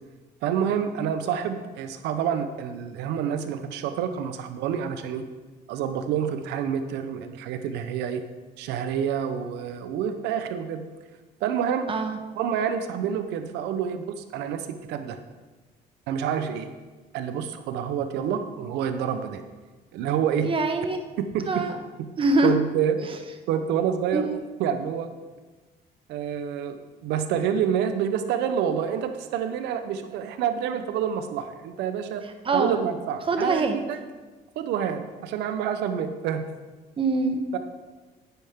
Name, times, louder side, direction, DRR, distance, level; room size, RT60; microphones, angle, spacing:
voice 1, 0.4-5.3 5.7-8.2 8.6-10.8 11.4-11.9 12.4-15.2 16.1-16.7 17.1-19.4 19.9-20.5 21.2-21.6 22.0-22.1 22.4-23.1 23.5-24.3 24.6-25.1 26.1-32.2 32.5-34.0 34.6-36.5 37.5-37.6, right 8 dB, 85° right, 9 dB, 0.9 m, -28 dB
voice 2, 20.4-21.0 21.4-21.8 22.2-22.5 23.0-23.1 24.1-24.4 32.4-32.8 33.3-33.8 37.0-37.4, right 3 dB, 30° right, 6 dB, 1.2 m, -24 dB
10.0 x 9.0 x 3.7 m, 1.3 s
cardioid pair, 110°, 17 cm